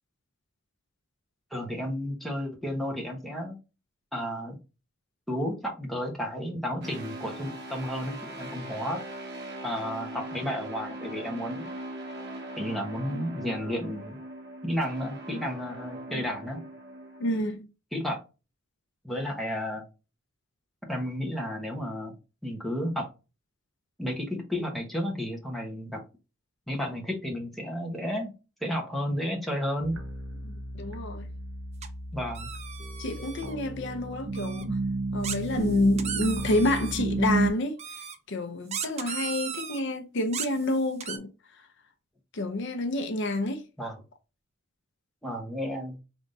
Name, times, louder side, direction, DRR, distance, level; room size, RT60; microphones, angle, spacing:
voice 1, 1.5-3.6 4.1-4.6 5.3-9.0 9.6-11.7 12.6-14.2 14.6-16.6 17.9-18.2 19.0-19.8 20.9-22.1 22.4-23.1 24.0-26.0 26.7-28.3 28.6-29.9 32.1-32.5 43.8-44.0 45.2-46.0, equal, ahead, 1.1 m, -32 dB
sound 1, 6.8-17.4, right 1 dB, 55° right, 1.3 m, -40 dB
voice 2, 17.2-17.6 30.4-31.3 33.0-34.7 35.1-38.0 38.3-41.3 42.3-43.6, left 2 dB, 60° left, 0.6 m, -29 dB
sound 2, 29.8-37.5, right 2 dB, 85° right, 1.3 m, -33 dB
sound 3, 31.8-31.9 32.3-33.6 34.4-34.6 35.2-37.0 37.8-38.2 38.7-39.8 40.3-41.2, right 7 dB, 35° right, 0.5 m, -36 dB
5.1 x 3.5 x 2.6 m
head